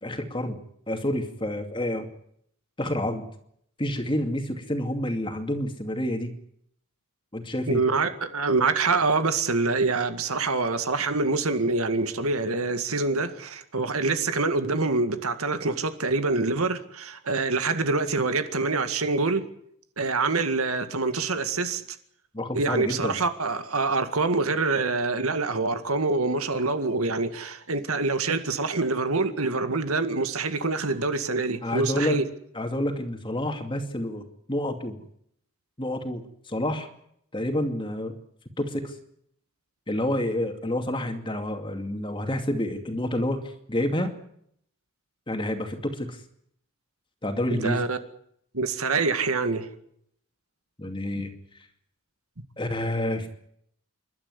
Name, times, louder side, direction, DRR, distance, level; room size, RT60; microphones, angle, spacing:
voice 1, 0.0-0.6 0.9-2.1 2.8-3.3 3.8-6.3 7.3-7.8 22.3-23.1 31.6-32.2 32.5-35.0 35.8-36.9 37.3-38.2 38.6-38.9 39.9-44.1 45.3-46.2 47.2-47.8 50.8-51.3 52.6-53.3, left 1 dB, 25° left, 2.5 m, -28 dB
voice 2, 7.7-19.4 20.0-21.8 22.5-32.2 47.5-48.0 48.5-49.7 51.1-51.2, right 3 dB, 80° right, 2.0 m, -25 dB
28.0 x 12.5 x 9.7 m
head